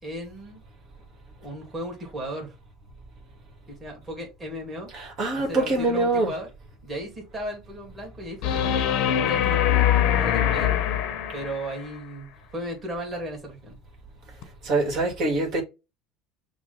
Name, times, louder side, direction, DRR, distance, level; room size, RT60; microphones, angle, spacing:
voice 1, 0.0-0.6 1.4-2.5 3.7-4.9 5.3-6.5 6.8-10.8 11.3-13.8, equal, 15° right, 1.9 m, -35 dB
voice 2, 4.9-6.3 14.6-15.6, right 2 dB, 50° right, 1.7 m, -24 dB
sound 1, 8.4-11.8 14.4-14.5, left 10 dB, 60° left, 0.7 m, -23 dB
5.9 x 2.2 x 3.8 m
cardioid pair, 140°, 0 cm